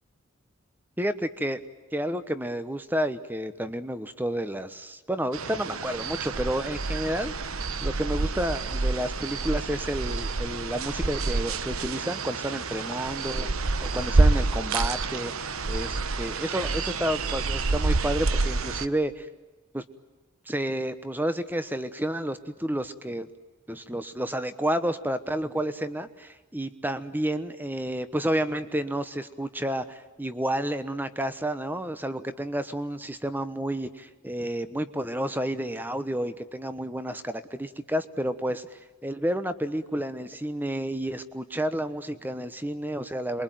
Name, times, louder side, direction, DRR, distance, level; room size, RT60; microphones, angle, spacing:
voice 1, 1.0-1.6 1.9-7.3 7.8-19.3 19.7-19.8 20.5-23.3 23.7-43.4, right 1 dB, 10° right, 12 dB, 1.1 m, -30 dB
sound 1, 5.3-18.9, right 3 dB, 75° right, 1.1 m, -28 dB
27.5 x 23.0 x 9.3 m, 1.2 s
head